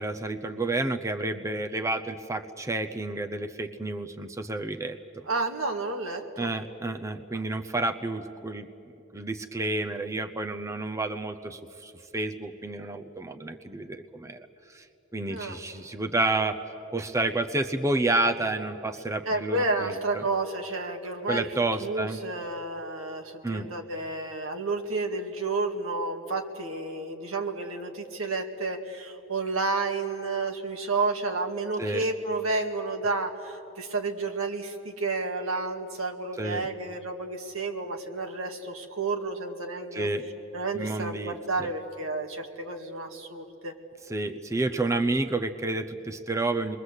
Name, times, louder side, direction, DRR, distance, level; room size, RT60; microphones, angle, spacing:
voice 1, 0.0-5.2 6.4-8.7 9.1-14.9 15.1-16.6 16.9-20.2 21.3-22.2 23.4-23.7 31.8-32.0 36.4-36.7 39.9-40.2 40.7-41.7 44.1-46.8, right 2 dB, 15° right, 6 dB, 0.7 m, -30 dB
voice 2, 5.3-6.5 15.3-15.6 19.3-21.5 21.8-40.1 40.5-43.7, right 3 dB, 85° right, 3 dB, 2.1 m, -31 dB
29.0 x 22.0 x 8.1 m, 2.9 s
head